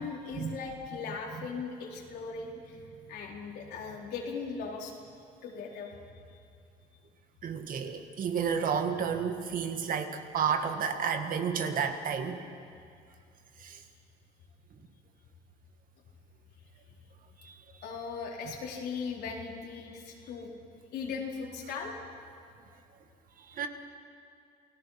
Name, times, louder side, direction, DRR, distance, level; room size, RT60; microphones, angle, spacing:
voice 1, 0.0-2.8 3.1-4.9 5.4-6.0 6.3-6.4 17.8-20.5 20.9-21.9, left 5 dB, 75° left, -1 dB, 4.1 m, -38 dB
voice 2, 7.4-12.5 13.6-13.8 17.4-17.9 23.4-23.7, right 6 dB, 55° right, 6 dB, 1.9 m, -31 dB
29.0 x 18.0 x 5.8 m, 2.3 s
cardioid pair, 110°, 17 cm